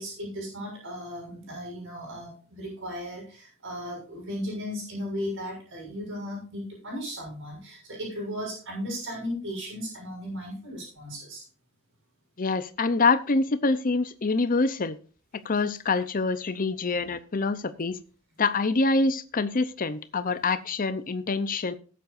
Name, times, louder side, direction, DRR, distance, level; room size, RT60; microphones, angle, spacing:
voice 1, 0.0-11.4, equal, 60° right, 0 dB, 6.4 m, -36 dB
voice 2, 12.4-15.0 15.4-18.0 18.4-21.7, left 3 dB, 40° left, 12 dB, 0.7 m, -25 dB
19.0 x 7.7 x 2.6 m, 0.39 s
head